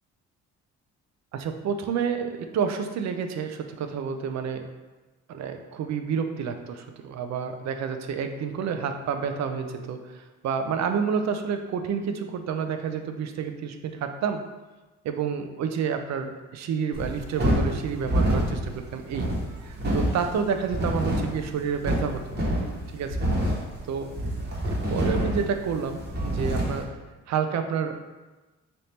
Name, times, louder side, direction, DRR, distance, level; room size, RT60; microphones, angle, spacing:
voice 1, 1.3-4.7 5.3-14.4 15.0-19.3 19.6-22.4 22.9-23.2 23.9-24.3 24.7-26.9 27.3-28.0, right 6 dB, 65° right, 7 dB, 0.5 m, -29 dB
sound 1, 16.9-26.8, equal, 35° right, 1.2 m, -27 dB
3.5 x 2.7 x 4.2 m, 1.2 s
cardioid pair, 90°, 30 cm